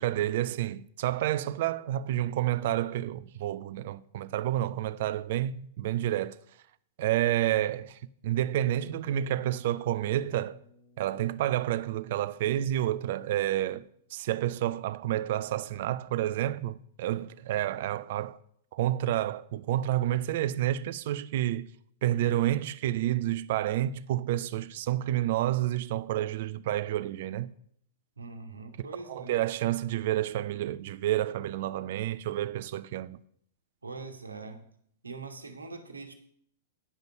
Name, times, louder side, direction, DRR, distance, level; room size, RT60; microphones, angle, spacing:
voice 1, 0.0-6.4 7.0-10.6 11.0-18.4 18.7-21.7 22.0-27.5 28.8-33.2, right 13 dB, 60° right, 0.4 m, -29 dB
sound 1, 8.3-14.0, right 1 dB, 75° left, 3.7 m, -55 dB
voice 2, 28.2-29.4 33.8-34.6 35.0-36.1, right 3 dB, 90° right, 1.2 m, -42 dB
9.7 x 5.2 x 6.6 m
hypercardioid pair, 105°, 0 cm